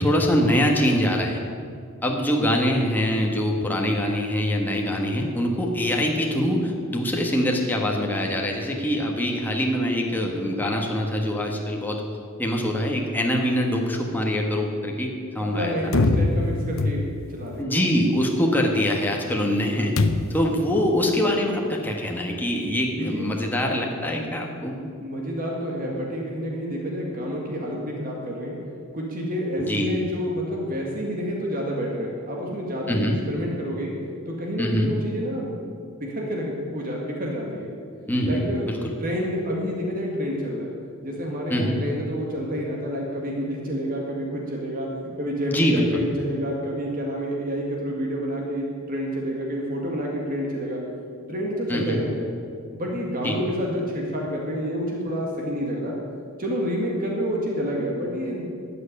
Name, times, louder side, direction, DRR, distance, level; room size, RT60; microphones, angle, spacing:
voice 1, 0.0-1.4 2.0-12.0 12.4-15.7 17.6-19.9 20.3-24.8 29.6-29.9 32.9-33.2 34.6-34.9 38.1-38.8 41.5-41.8 45.5-46.0 51.7-52.0 53.2-53.4, equal, 10° left, 0 dB, 1.4 m, -24 dB
voice 2, 15.5-17.0 17.3-17.7 23.0-23.3 25.0-28.5 28.9-33.9 34.3-35.6 36.0-37.7 38.3-40.7 41.0-44.9 45.2-50.8 51.3-52.3 52.7-56.0 56.4-58.5, equal, 40° right, -1 dB, 1.9 m, -28 dB
sound 1, 15.9-17.4 20.0-20.5, left 2 dB, 65° left, 0.8 m, -23 dB
12.5 x 6.9 x 9.9 m, 2.3 s
head